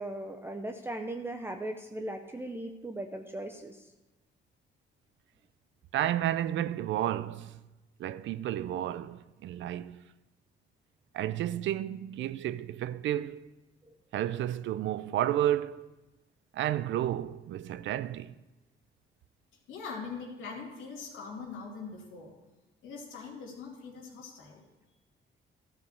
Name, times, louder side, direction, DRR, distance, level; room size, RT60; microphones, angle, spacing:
voice 1, 0.0-3.9, right 1 dB, 10° right, 0.6 m, -38 dB
voice 2, 5.9-7.6 8.0-10.0 11.1-13.4 14.1-15.9 16.5-18.4, right 12 dB, 70° right, 0.4 m, -31 dB
voice 3, 19.7-22.3 22.8-24.6, left 5 dB, 90° left, 2.5 m, -42 dB
13.0 x 5.1 x 6.6 m
cardioid pair, 90°, 20 cm